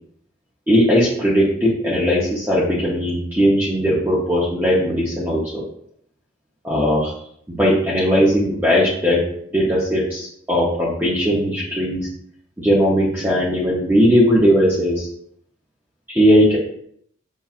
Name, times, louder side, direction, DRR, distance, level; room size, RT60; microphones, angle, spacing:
voice 1, 0.7-5.6 6.6-7.1 7.5-9.2 9.5-12.1 12.6-15.1 16.1-16.6, equal, 10° right, -7 dB, 0.6 m, -18 dB
5.5 x 2.3 x 2.4 m, 0.67 s
head